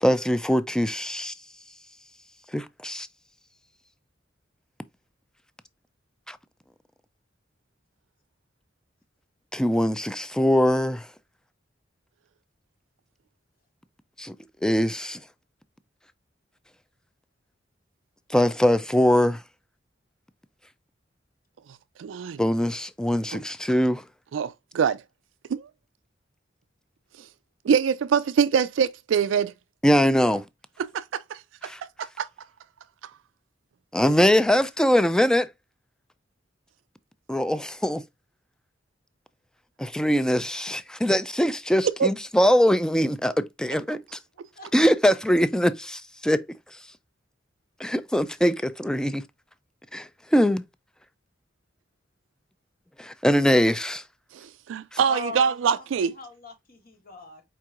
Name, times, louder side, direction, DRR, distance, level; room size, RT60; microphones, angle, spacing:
voice 1, 0.0-1.3 2.5-3.1 6.3-6.4 9.5-11.1 14.2-14.4 14.6-15.2 18.3-19.4 22.4-24.0 29.8-30.4 31.6-31.8 33.9-35.5 37.3-38.0 39.8-44.0 44.7-46.4 47.8-49.2 49.9-50.6 53.0-54.0, equal, 5° left, 0.3 m, -22 dB
voice 2, 22.0-22.4 24.3-25.0 25.5-25.6 27.7-29.5 30.8-31.0 31.3-31.7 32.0-32.3 42.0-42.1 54.7-56.2, right 7 dB, 85° right, 0.4 m, -24 dB
voice 3, 55.0-57.4, left 4 dB, 50° left, 1.3 m, -40 dB
4.6 x 4.5 x 2.4 m
head